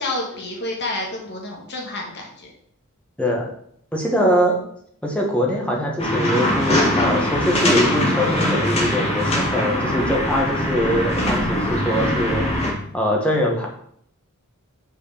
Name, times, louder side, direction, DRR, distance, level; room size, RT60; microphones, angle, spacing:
voice 1, 0.0-2.5, left 2 dB, 50° left, -1 dB, 1.6 m, -29 dB
voice 2, 3.9-4.6 5.0-12.7 12.9-13.7, equal, 5° left, -2 dB, 1.6 m, -22 dB
sound 1, 6.0-12.7, left 1 dB, 30° left, 1.7 m, -21 dB
5.7 x 4.9 x 6.6 m, 0.67 s
head